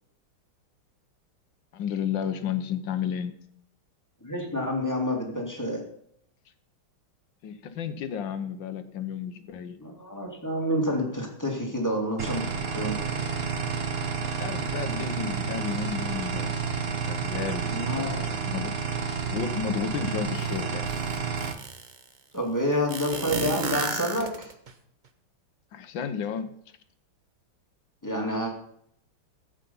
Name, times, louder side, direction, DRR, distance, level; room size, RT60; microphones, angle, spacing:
voice 1, 1.7-3.4 7.4-9.8 14.2-16.6 17.0-18.7 19.3-20.9 25.7-26.5, left 8 dB, 65° left, 10 dB, 1.6 m, -32 dB
voice 2, 4.2-5.8 9.8-13.0 17.6-18.2 22.3-24.5 28.0-28.5, equal, 10° left, 0 dB, 2.3 m, -28 dB
sound 1, 12.2-21.5, right 6 dB, 40° right, 0.9 m, -30 dB
sound 2, 20.4-20.5 20.9-22.0 22.9-24.7, right 4 dB, 60° right, 0.4 m, -32 dB
14.0 x 8.2 x 5.5 m, 0.70 s
omnidirectional pair, 2.3 m